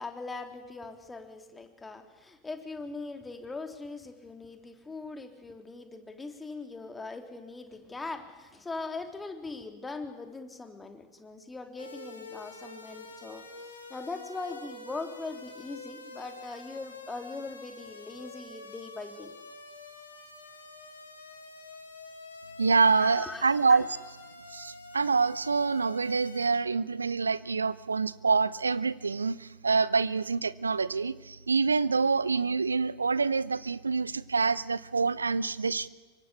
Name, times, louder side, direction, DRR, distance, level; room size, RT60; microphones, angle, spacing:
voice 1, 0.0-19.4 22.9-23.9, left 3 dB, 10° left, 6 dB, 3.3 m, -41 dB
sound 1, 11.8-26.5, left 3 dB, 75° left, 4.0 m, -47 dB
voice 2, 22.6-23.9 24.5-35.9, right 4 dB, 75° right, 18 dB, 0.9 m, -26 dB
26.5 x 24.0 x 8.4 m, 1.2 s
figure-of-eight pair, 90°, 0 cm